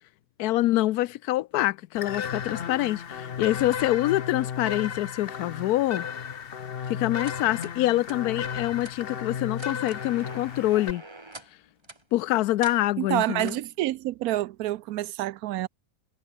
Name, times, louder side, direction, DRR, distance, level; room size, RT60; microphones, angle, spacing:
voice 1, 0.4-6.1 6.9-11.0 12.1-13.6, left 16 dB, 90° left, 1.1 m, -25 dB
sound 1, 1.9-10.9, left 7 dB, 45° left, 1.0 m, -34 dB
sound 2, 7.2-7.8 8.0-8.2 8.8-8.9 9.5-11.5 11.8-12.0 12.6-12.8 13.4-13.7, right 2 dB, 20° right, 1.8 m, -44 dB
voice 2, 13.0-15.7, right 15 dB, 80° right, 1.0 m, -28 dB
omnidirectional pair, 1.6 m